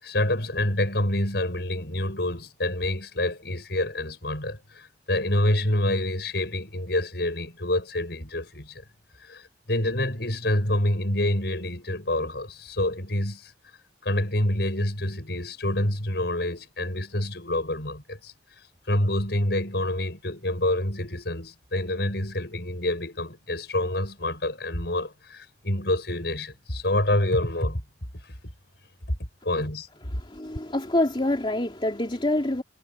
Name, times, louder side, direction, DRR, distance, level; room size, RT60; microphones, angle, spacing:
voice 1, 0.0-8.8 9.2-13.5 14.0-18.3 18.9-27.8 29.4-29.9, left 1 dB, 65° left, 8.0 m, -27 dB
voice 2, 30.2-32.6, left 1 dB, 30° left, 2.8 m, -26 dB
head